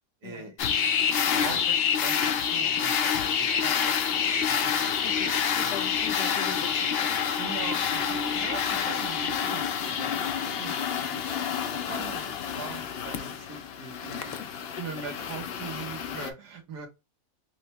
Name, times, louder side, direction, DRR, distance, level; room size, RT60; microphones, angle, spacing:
voice 1, 0.2-0.9 1.3-3.7 4.4-5.0 5.6-5.7 7.4-11.2 11.7-14.4 14.8-16.9, right 6 dB, 85° right, 1.6 m, -42 dB
sound 1, 0.6-16.3, left 7 dB, 85° left, 0.5 m, -28 dB
voice 2, 5.0-7.1 14.1-14.5, left 7 dB, 65° left, 1.1 m, -41 dB
5.4 x 2.1 x 2.8 m
omnidirectional pair, 1.7 m